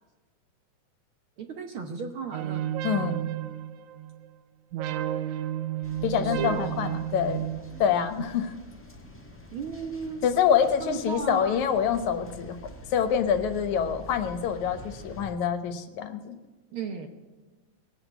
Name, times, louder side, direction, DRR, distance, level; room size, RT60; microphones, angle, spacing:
voice 1, 1.4-2.7 6.1-6.9 9.5-10.3 10.8-11.6 16.7-17.1, right 5 dB, 60° right, 5 dB, 1.5 m, -35 dB
sound 1, 2.3-4.3 4.7-8.2, right 12 dB, 85° right, 2.1 m, -32 dB
voice 2, 2.8-3.2 6.0-7.4 7.8-8.5 10.2-12.6 12.9-16.4, left 8 dB, 75° left, 9 dB, 2.4 m, -26 dB
sound 2, 5.8-15.3, left 1 dB, 20° left, 0.3 m, -46 dB
20.0 x 8.0 x 8.0 m, 1.2 s
omnidirectional pair, 3.4 m